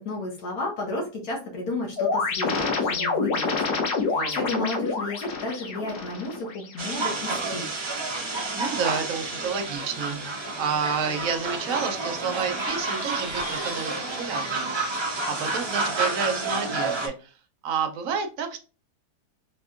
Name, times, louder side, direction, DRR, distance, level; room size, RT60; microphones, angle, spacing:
voice 1, 0.0-7.7, left 2 dB, 65° left, 1.4 m, -33 dB
sound 1, 2.0-6.9, left 4 dB, 90° left, 1.5 m, -27 dB
voice 2, 4.1-4.5 8.5-17.3 17.6-18.6, right 6 dB, 65° right, 1.0 m, -30 dB
sound 2, 6.8-17.1, right 3 dB, 45° right, 0.3 m, -30 dB
Singing, 7.9-16.2, right 1 dB, 25° left, 1.3 m, -46 dB
4.2 x 2.6 x 2.4 m
omnidirectional pair, 1.7 m